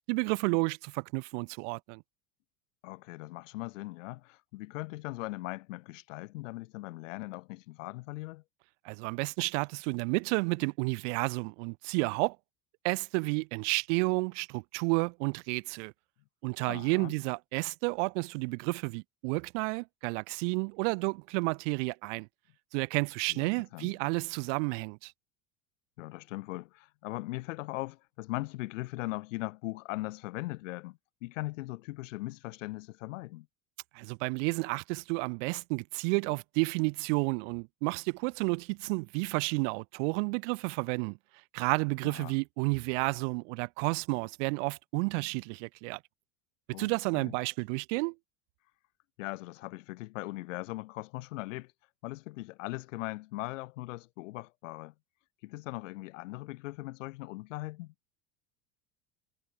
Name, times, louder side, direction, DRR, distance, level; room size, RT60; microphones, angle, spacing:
voice 1, 0.1-2.0 8.8-12.4 12.8-15.9 16.4-22.3 22.7-25.1 33.9-41.2 41.5-46.0 46.8-48.1, right 32 dB, 75° right, 0.9 m, -31 dB
voice 2, 2.8-8.4 16.7-17.1 23.3-23.9 26.0-33.5 42.0-42.4 46.7-47.3 49.2-51.7 52.0-54.9 55.4-57.9, left 20 dB, 90° left, 5.0 m, -40 dB
supercardioid pair, 130°, 37 cm